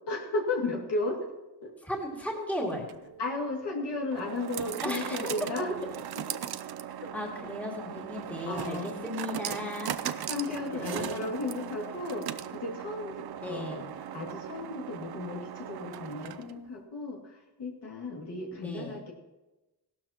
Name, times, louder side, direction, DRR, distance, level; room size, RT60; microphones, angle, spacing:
voice 1, 0.1-1.3 1.6-1.7 3.2-5.8 7.0-7.1 8.5-8.9 10.3-13.8 14.1-19.1, left 2 dB, 70° left, -1 dB, 2.5 m, -34 dB
voice 2, 1.8-2.9 4.8-5.2 7.0-10.3 10.7-11.2 13.4-13.8 18.5-19.0, left 1 dB, 5° left, -2 dB, 2.2 m, -36 dB
sound 1, 2.7-16.7, right 10 dB, 65° right, 0.6 m, -39 dB
17.0 x 12.5 x 3.0 m, 1.0 s
wide cardioid pair, 160°, 42 cm